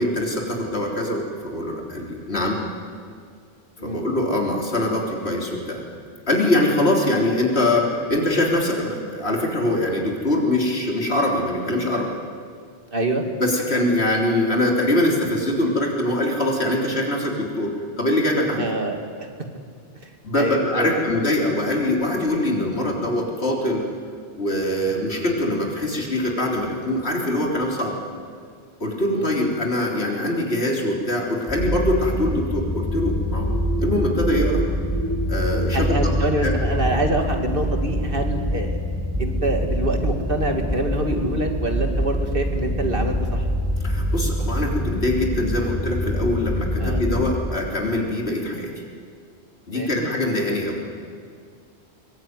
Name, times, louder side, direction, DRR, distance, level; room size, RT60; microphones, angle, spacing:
voice 1, 0.0-2.6 3.8-5.8 6.3-12.2 13.4-18.7 20.2-23.9 24.4-28.0 28.8-33.5 33.8-34.6 35.3-36.5 43.8-48.7 49.7-50.8, left 1 dB, 60° left, 0 dB, 4.1 m, -23 dB
voice 2, 12.9-13.2 18.6-19.3 20.0-21.0 22.7-22.9 24.9-25.0 29.1-29.3 35.7-38.8 39.2-43.4 46.8-47.0 49.7-50.1, right 1 dB, 50° right, 4 dB, 2.5 m, -26 dB
sound 1, 31.5-47.3, equal, 5° right, 5.0 m, -25 dB
sound 2, 33.4-37.1, right 2 dB, 25° left, 6.7 m, -32 dB
22.5 x 21.5 x 9.7 m, 2.1 s
omnidirectional pair, 1.2 m